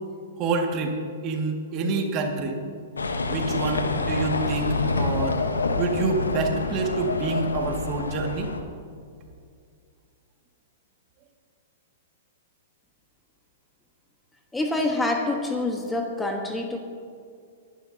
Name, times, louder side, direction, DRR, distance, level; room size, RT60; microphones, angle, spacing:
voice 1, 0.4-0.9 1.2-2.6 3.3-5.4 5.7-8.5, right 3 dB, 40° right, 2 dB, 2.0 m, -27 dB
sound 1, 3.0-8.6, left 3 dB, 90° left, 1.1 m, -27 dB
voice 2, 14.5-16.8, left 2 dB, 10° left, 2 dB, 1.2 m, -26 dB
24.0 x 11.0 x 2.8 m, 2.3 s
hypercardioid pair, 115°, 0 cm